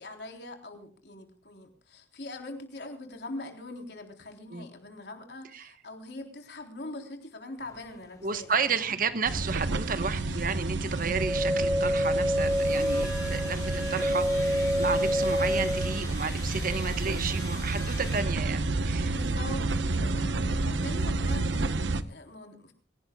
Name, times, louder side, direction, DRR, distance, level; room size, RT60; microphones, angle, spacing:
voice 1, 0.0-8.9 19.0-22.7, left 2 dB, 65° left, 3.8 m, -43 dB
sound 1, 7.6-18.2, left 3 dB, 20° left, 3.0 m, -47 dB
voice 2, 8.2-19.1, right 5 dB, 50° right, 1.2 m, -32 dB
sound 2, 9.3-22.0, right 2 dB, 90° right, 1.0 m, -30 dB
sound 3, 11.0-16.0, equal, 5° right, 0.8 m, -28 dB
26.0 x 17.0 x 2.3 m
head